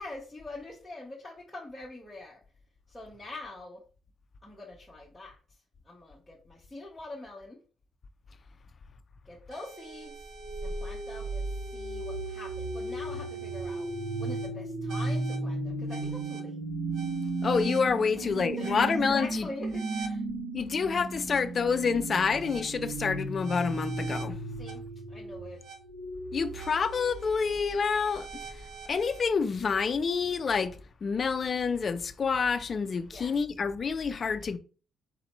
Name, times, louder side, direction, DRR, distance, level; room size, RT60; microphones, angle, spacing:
voice 1, 0.0-2.4 2.9-3.8 4.4-5.4 5.8-7.6 9.3-10.1 10.6-11.4 11.7-13.9 14.2-16.6 18.2-18.3 18.6-20.2 24.6-24.8 25.1-25.6 33.1-33.4, left 2 dB, 5° left, 0.8 m, -44 dB
sound 1, 9.5-29.3, right 2 dB, 60° right, 0.7 m, -35 dB
voice 2, 17.4-19.5 20.5-24.4 26.3-28.3 28.9-34.6, left 5 dB, 30° left, 0.4 m, -28 dB
4.3 x 2.7 x 4.1 m
cardioid pair, 170°, 0 cm